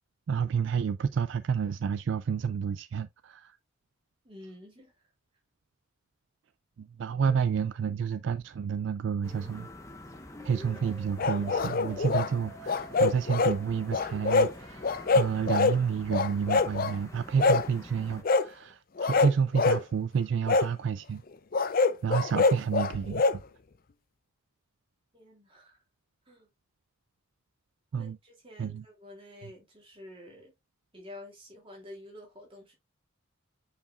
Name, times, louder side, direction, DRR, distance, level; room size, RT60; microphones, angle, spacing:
voice 1, 0.3-3.6 6.8-9.7 10.4-21.2 22.0-23.4 27.9-28.2 28.6-28.8, right 6 dB, 60° right, 0.3 m, -30 dB
voice 2, 4.2-4.9 7.3-7.4 25.1-25.8 26.3-26.5 27.9-30.5 30.9-32.7, left 1 dB, 25° right, 2.6 m, -49 dB
sound 1, 9.2-18.2, left 1 dB, 15° left, 1.0 m, -46 dB
sound 2, 11.2-12.3 12.7-13.6 13.9-14.5 14.8-15.8 16.1-16.9 17.4-17.7 18.2-18.5 19.0-19.8 20.5-20.7 21.5-23.4, left 4 dB, 40° left, 0.4 m, -25 dB
8.4 x 4.7 x 2.4 m
head